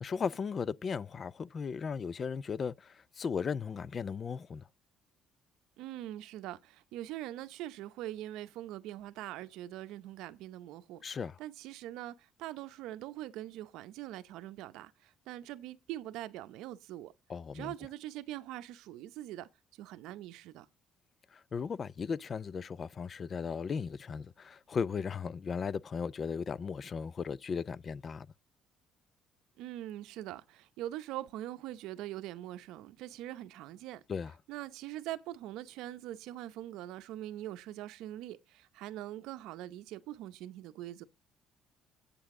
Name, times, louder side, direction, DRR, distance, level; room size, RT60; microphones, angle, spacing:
voice 1, 0.0-4.6 11.0-11.4 17.3-17.7 21.3-28.3 34.1-34.3, left 6 dB, 35° left, 0.4 m, -36 dB
voice 2, 5.8-11.0 11.4-17.1 17.5-19.5 19.8-20.7 29.6-34.0 34.5-41.0, right 14 dB, 85° right, 0.7 m, -43 dB
8.3 x 7.9 x 3.6 m
cardioid pair, 115°, 0 cm